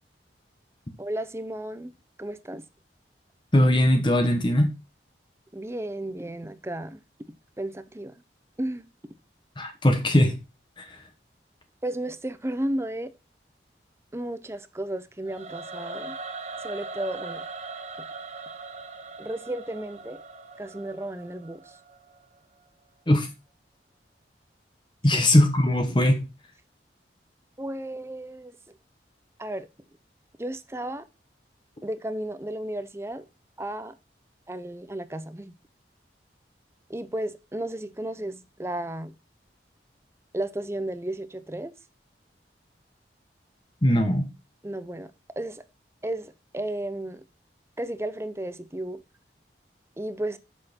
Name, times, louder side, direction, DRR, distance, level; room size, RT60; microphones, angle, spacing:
voice 1, 1.0-1.9 2.2-2.6 5.5-7.0 7.6-8.2 8.6-8.9 11.8-13.1 14.1-16.2 16.6-17.4 19.2-20.2 20.6-21.8 25.1-25.3 27.6-28.8 29.4-29.7 30.4-31.0 31.8-33.2 33.6-33.9 34.5-35.5 36.9-39.1 40.3-41.7 44.6-45.6 46.0-47.2 47.8-49.0 50.0-50.4, right 1 dB, 15° right, 0.6 m, -33 dB
voice 2, 3.5-4.7 9.6-10.4 10.8-11.0 23.1-23.3 25.0-26.3 43.8-44.3, left 1 dB, 25° left, 1.1 m, -20 dB
Singing / Musical instrument, 15.3-22.4, right 3 dB, 40° right, 1.2 m, -40 dB
7.7 x 6.4 x 4.3 m
head